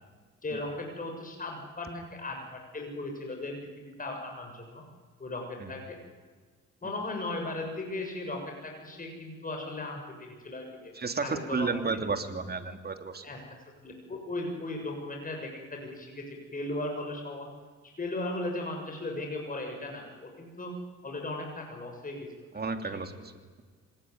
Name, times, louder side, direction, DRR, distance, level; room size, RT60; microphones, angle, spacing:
voice 1, 0.4-4.8 5.2-6.0 6.8-10.9 11.2-11.7 13.2-13.4 13.8-17.5 17.8-20.7 21.0-22.5, left 2 dB, 30° left, 2 dB, 7.1 m, -37 dB
voice 2, 10.9-13.2 22.5-23.3, right 4 dB, 30° right, 7 dB, 3.1 m, -32 dB
25.5 x 19.5 x 9.7 m, 1.5 s
cardioid pair, 90°, 30 cm